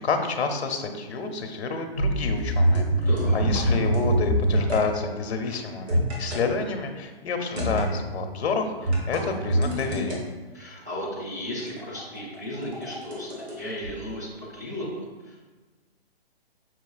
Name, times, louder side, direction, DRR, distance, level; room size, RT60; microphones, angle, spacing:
voice 1, 0.0-2.9 3.3-10.2, left 4 dB, 90° left, 5 dB, 0.7 m, -29 dB
sound 1, 2.0-4.8 5.9-6.4 7.6-8.0 8.8-10.2 11.6-13.5 13.8-13.9, right 1 dB, 80° right, 1.5 m, -24 dB
voice 2, 3.1-3.4 10.5-15.5, equal, 20° right, -8 dB, 0.5 m, -35 dB
5.7 x 2.8 x 2.4 m, 1.3 s
hypercardioid pair, 175°, 32 cm